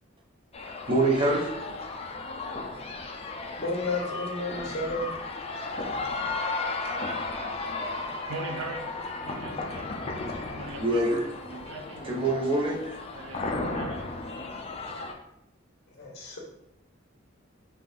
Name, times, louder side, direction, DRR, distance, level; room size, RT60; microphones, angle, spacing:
sound 1, 0.5-15.1, left 3 dB, 30° left, 0.5 m, -35 dB
voice 1, 0.9-1.5 10.8-11.2 12.0-13.0, right 2 dB, 25° right, -2 dB, 0.8 m, -25 dB
voice 2, 3.6-5.1 8.0-8.1 15.9-16.4, left 2 dB, 55° left, -1 dB, 1.2 m, -32 dB
voice 3, 7.9-10.0 10.5-11.1 11.4-12.2 13.1-14.1, right 3 dB, 80° right, 5 dB, 0.5 m, -41 dB
5.7 x 2.5 x 3.5 m, 0.82 s
head